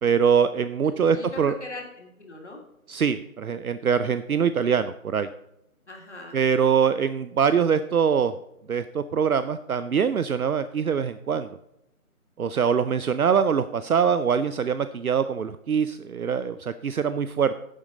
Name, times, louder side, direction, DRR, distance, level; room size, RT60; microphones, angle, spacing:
voice 1, 0.0-1.5 2.9-5.3 6.3-8.3 8.7-11.5 12.4-17.6, right 7 dB, 70° right, 12 dB, 0.6 m, -23 dB
voice 2, 0.8-2.6 5.9-6.4, left 2 dB, 50° left, 1 dB, 2.6 m, -40 dB
10.5 x 7.4 x 3.9 m, 0.82 s
figure-of-eight pair, 175°, 44 cm